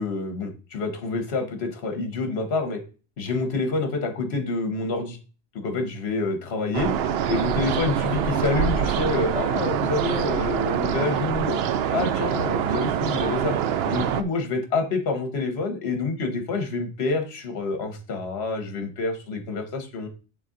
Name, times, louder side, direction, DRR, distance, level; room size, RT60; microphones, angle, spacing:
voice 1, 0.0-2.8 3.2-5.2 5.5-6.9 7.3-11.6 11.9-13.5 13.8-20.1, left 3 dB, 65° left, 6 dB, 1.3 m, -27 dB
sound 1, 6.7-14.2, right 8 dB, 65° right, 0.7 m, -25 dB
8.1 x 4.1 x 3.7 m, 0.36 s
omnidirectional pair, 1.2 m